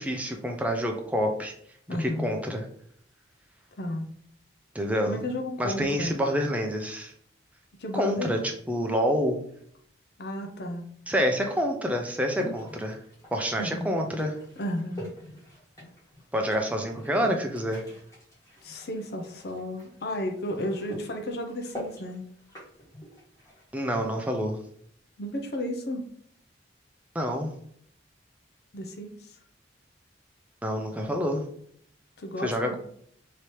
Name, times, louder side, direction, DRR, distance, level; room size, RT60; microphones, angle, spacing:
voice 1, 0.0-1.5 1.9-2.6 4.7-5.2 5.6-7.1 7.9-9.4 11.1-13.0 13.3-14.4 16.3-17.8 23.7-24.6 27.1-27.5 30.6-31.4 32.4-32.7, equal, 10° right, 2 dB, 0.5 m, -27 dB
voice 2, 1.9-2.3 3.8-4.1 5.1-6.2 7.8-8.3 10.2-10.9 13.6-13.9 14.6-15.1 17.2-17.3 18.6-22.2 25.2-26.0 28.7-29.4 32.2-32.7, left 1 dB, 60° left, 3 dB, 0.6 m, -33 dB
sound 1, 12.4-24.1, equal, 15° left, 1.5 m, -45 dB
3.3 x 2.9 x 4.4 m, 0.64 s
head